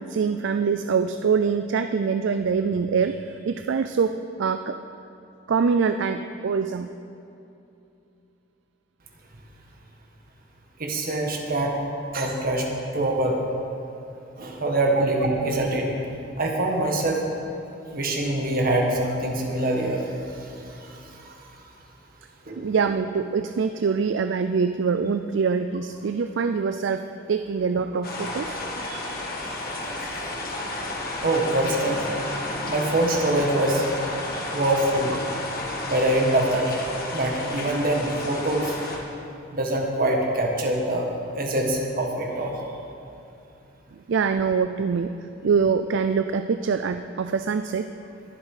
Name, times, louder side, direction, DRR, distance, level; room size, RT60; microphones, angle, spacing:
voice 1, 0.0-4.8 5.5-6.9 15.0-15.1 22.6-28.6 34.6-35.0 44.1-45.1 45.4-47.9, right 5 dB, 65° right, 9 dB, 0.4 m, -24 dB
voice 2, 10.8-11.7 12.1-12.7 12.9-13.4 14.4-15.9 16.4-17.2 17.9-21.3 22.5-22.6 28.8-29.1 31.2-32.2 32.7-33.8 34.5-35.2 35.9-36.8 37.1-38.8 39.5-41.1 41.4-42.6, right 1 dB, 50° right, 0 dB, 1.8 m, -24 dB
sound 1, 28.0-39.0, left 2 dB, 50° left, 1.7 m, -32 dB
21.5 x 7.5 x 4.9 m, 2.8 s
head